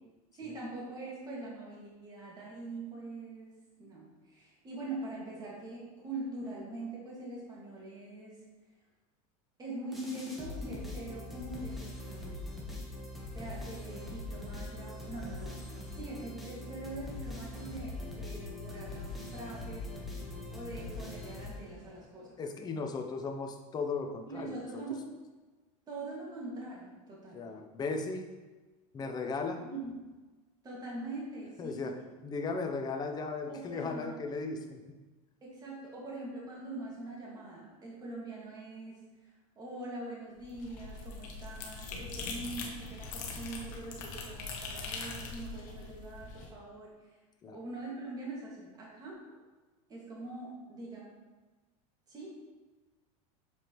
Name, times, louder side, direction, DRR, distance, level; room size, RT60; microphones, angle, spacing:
voice 1, 0.3-3.5 3.8-8.4 9.6-12.6 13.3-15.6 15.9-20.2 20.5-22.4 24.3-25.1 25.9-27.4 29.6-29.9 30.6-31.9 33.5-34.2 35.4-39.0 39.6-47.1 47.5-49.4 49.9-51.1 52.1-52.4, right 2 dB, 20° right, -5 dB, 1.9 m, -43 dB
sound 1, 9.9-22.0, left 2 dB, ahead, 1.2 m, -42 dB
voice 2, 22.4-24.6 27.3-28.3 28.9-29.7 31.6-32.0 32.2-35.0 47.4-47.6, left 4 dB, 25° left, 4 dB, 0.6 m, -36 dB
sound 2, 40.4-46.5, left 4 dB, 50° left, 1.2 m, -42 dB
7.0 x 4.7 x 3.1 m, 1.2 s
supercardioid pair, 135°, 18 cm